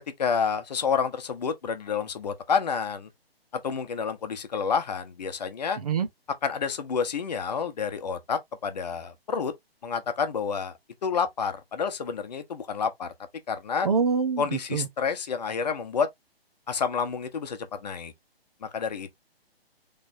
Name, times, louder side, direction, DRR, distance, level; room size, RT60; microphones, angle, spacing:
voice 1, 0.2-3.1 3.5-5.8 6.4-9.5 9.8-10.7 11.0-13.1 13.5-13.9 14.4-16.1 16.7-18.1 18.6-19.1, left 6 dB, 40° left, 0.8 m, -29 dB
voice 2, 5.8-6.1 13.8-14.9, right 5 dB, 40° right, 0.5 m, -25 dB
4.0 x 3.2 x 2.7 m
figure-of-eight pair, 135°, 31 cm